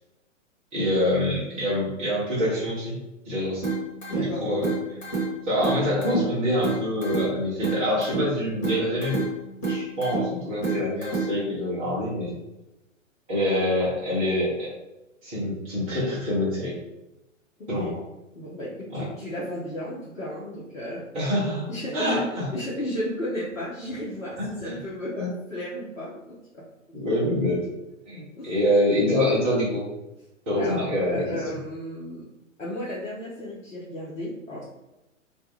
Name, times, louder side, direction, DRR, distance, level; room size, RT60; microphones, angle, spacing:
voice 1, 0.7-3.0 3.3-3.6 4.1-4.7 5.5-9.2 9.7-12.3 13.3-14.7 15.2-16.7 17.7-18.0 18.9-19.1 21.1-21.7 21.9-22.5 24.6-24.8 25.1-25.3 26.9-27.6 28.1-29.8 30.5-31.2, left 1 dB, 10° right, -11 dB, 0.3 m, -25 dB
sound 1, 3.6-11.6, right 3 dB, 20° left, 1.1 m, -30 dB
voice 2, 4.1-4.4 17.6-17.9 18.4-21.1 21.7-26.4 28.4-28.6 30.6-32.3 32.6-34.6, left 1 dB, 90° left, -7 dB, 0.8 m, -34 dB
2.3 x 2.2 x 2.9 m, 0.97 s
figure-of-eight pair, 115°, 39 cm